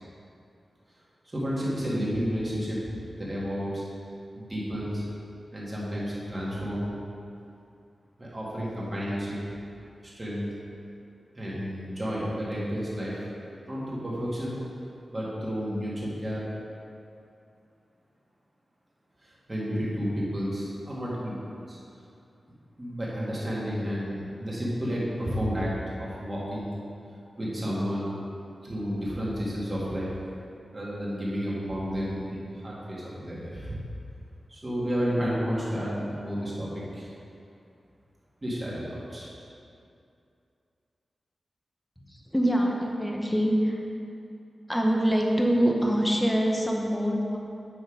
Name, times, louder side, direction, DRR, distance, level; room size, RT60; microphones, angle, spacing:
voice 1, 1.3-2.8 3.2-3.8 4.3-5.0 5.5-6.9 8.2-9.4 10.0-10.5 11.3-13.3 13.6-14.6 15.1-16.4 19.2-21.8 22.8-25.7 26.0-26.7 27.4-28.1 28.6-30.1 30.7-33.8 34.5-37.1 38.4-39.3, equal, 25° right, -7 dB, 2.0 m, -31 dB
voice 2, 42.0-43.8 44.7-47.4, equal, 5° left, -1 dB, 0.9 m, -25 dB
8.0 x 5.8 x 4.9 m, 2.6 s
wide cardioid pair, 150°, 0 cm